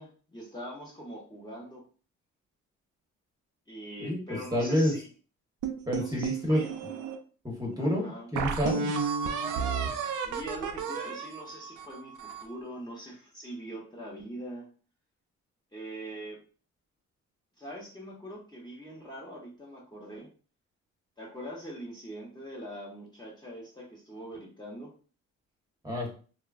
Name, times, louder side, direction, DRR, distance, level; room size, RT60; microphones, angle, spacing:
voice 1, 0.0-1.8 3.7-5.1 6.0-6.7 7.8-8.3 10.2-14.7 15.7-16.4 17.6-20.3 21.2-24.9, right 1 dB, 15° left, -4 dB, 0.9 m, -43 dB
voice 2, 4.0-4.9 5.9-6.6 7.4-8.9 25.8-26.1, left 1 dB, 10° right, -2 dB, 1.0 m, -28 dB
sound 1, 5.6-7.2 7.7-7.8 8.4-12.5, right 6 dB, 85° right, 0.5 m, -32 dB
3.1 x 2.3 x 2.3 m, 0.38 s
cardioid pair, 90°, 30 cm